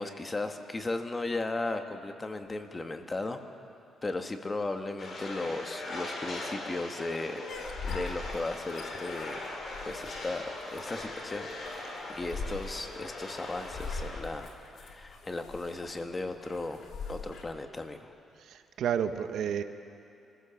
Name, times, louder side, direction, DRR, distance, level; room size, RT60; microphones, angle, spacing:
voice 1, 0.0-3.4 4.0-7.4 7.8-9.4 9.8-18.1, left 2 dB, 25° left, 6 dB, 1.6 m, -36 dB
sound 1, 5.0-14.2, left 2 dB, 45° left, 4.6 m, -40 dB
sound 2, 7.5-17.4, left 4 dB, 65° left, 2.4 m, -42 dB
voice 2, 18.4-19.6, right 8 dB, 75° right, 9 dB, 1.0 m, -31 dB
25.0 x 15.5 x 7.2 m, 2.6 s
cardioid pair, 90°, 0 cm